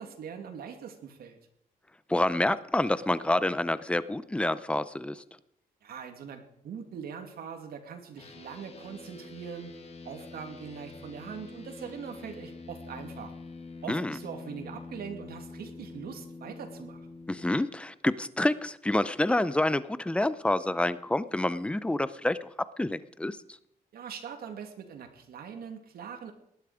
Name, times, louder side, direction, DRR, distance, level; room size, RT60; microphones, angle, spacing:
voice 1, 0.0-1.4 5.8-9.8 10.0-13.3 13.8-17.0 23.9-26.3, right 7 dB, 85° right, 5 dB, 2.6 m, -42 dB
voice 2, 2.1-5.2 13.9-14.1 17.3-22.5 22.8-23.4, left 1 dB, 5° left, 15 dB, 0.6 m, -28 dB
sound 1, 8.2-17.5, left 3 dB, 40° left, 2.0 m, -45 dB
19.0 x 11.5 x 5.0 m, 0.78 s
wide cardioid pair, 175°, 15 cm